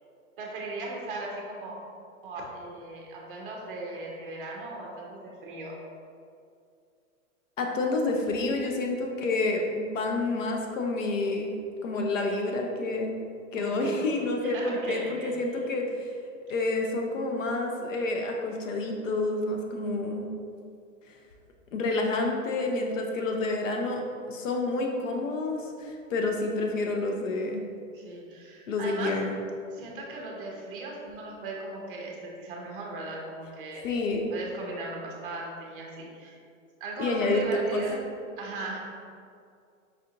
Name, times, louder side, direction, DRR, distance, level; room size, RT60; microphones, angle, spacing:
voice 1, 0.4-1.8 2.2-5.8 13.5-14.0 14.4-15.4 27.9-29.3 29.7-33.9 34.3-36.4 36.8-38.1 38.4-38.8, right 2 dB, 40° right, -1 dB, 0.7 m, -38 dB
voice 2, 7.6-11.5 11.8-13.2 13.5-16.1 16.5-20.3 21.7-27.6 28.7-29.4 33.8-34.3 37.0-37.8, left 2 dB, 65° left, 2 dB, 0.6 m, -29 dB
4.9 x 2.5 x 2.8 m, 2.3 s
hypercardioid pair, 170°, 41 cm